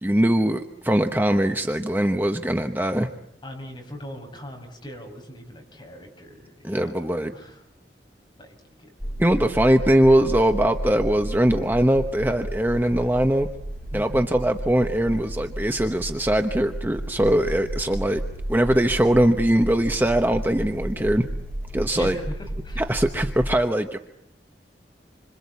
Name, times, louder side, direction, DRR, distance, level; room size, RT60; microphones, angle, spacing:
voice 1, 0.0-3.1 6.6-7.3 9.2-13.5 13.9-18.2 18.5-21.3 21.7-22.1 22.8-24.0, right 1 dB, 10° right, 6 dB, 1.0 m, -21 dB
voice 2, 3.4-7.6 8.4-8.9 13.9-14.3 21.9-22.8, equal, 25° left, 2 dB, 6.4 m, -40 dB
sound 1, 9.0-23.4, right 1 dB, 5° left, 5.3 m, -33 dB
27.5 x 26.0 x 8.4 m, 0.75 s
head